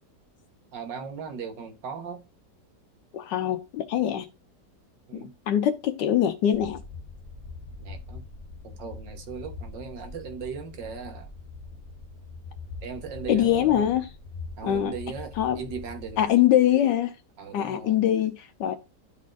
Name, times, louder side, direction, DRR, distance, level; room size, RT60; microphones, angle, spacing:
voice 1, 0.7-2.2 4.0-4.2 5.1-5.4 7.8-8.3 8.6-11.3 12.8-14.0 14.6-16.3 17.4-18.1, right 6 dB, 80° right, 1.8 m, -38 dB
voice 2, 3.1-4.3 5.5-6.8 13.3-14.1 14.6-14.9 15.4-15.6 16.2-17.1 17.5-18.7, left 11 dB, 80° left, 1.3 m, -23 dB
sound 1, 6.5-16.3, left 4 dB, 55° left, 1.1 m, -42 dB
11.5 x 4.1 x 2.5 m
omnidirectional pair, 1.9 m